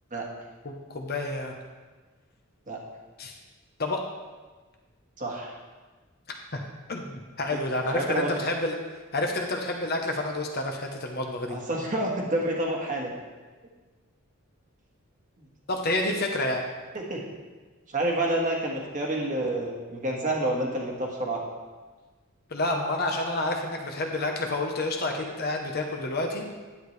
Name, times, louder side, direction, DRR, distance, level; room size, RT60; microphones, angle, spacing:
voice 1, 0.6-1.5 3.2-3.3 3.8-4.0 6.5-8.8 9.1-11.6 15.7-16.7 22.5-26.4, left 2 dB, 45° left, 2 dB, 0.9 m, -29 dB
voice 2, 5.2-5.5 7.5-7.6 7.9-8.3 11.5-13.1 15.4-15.5 17.1-17.2 17.9-21.4, right 1 dB, 35° right, -1 dB, 1.6 m, -28 dB
10.5 x 8.7 x 3.3 m, 1.3 s
head